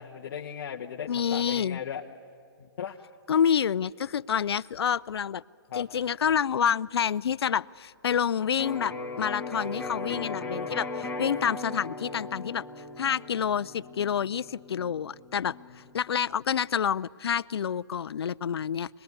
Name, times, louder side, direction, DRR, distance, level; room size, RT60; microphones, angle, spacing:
voice 1, 0.0-2.0 2.6-3.0 5.7-5.9 10.1-10.4, left 8 dB, 45° left, -2 dB, 1.2 m, -37 dB
voice 2, 1.1-1.8 3.3-5.4 5.7-12.7 13.0-18.9, left 8 dB, 70° left, 17 dB, 0.5 m, -28 dB
Electric guitar, 8.6-16.4, left 2 dB, 5° left, 1.6 m, -38 dB
25.5 x 20.0 x 9.5 m, 2.7 s
hypercardioid pair, 160°, 14 cm